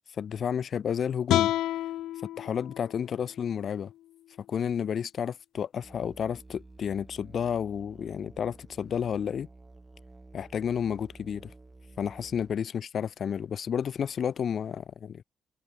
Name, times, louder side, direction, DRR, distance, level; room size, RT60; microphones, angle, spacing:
voice 1, 0.2-1.5 2.4-3.9 4.5-9.5 10.3-11.5 12.0-15.2, left 8 dB, 55° left, 2.3 m, -31 dB
sound 1, 1.3-4.5, left 14 dB, 85° left, 1.4 m, -31 dB
Musical instrument, 5.8-12.6, right 2 dB, 20° right, 2.8 m, -51 dB
cardioid pair, 90°, 0 cm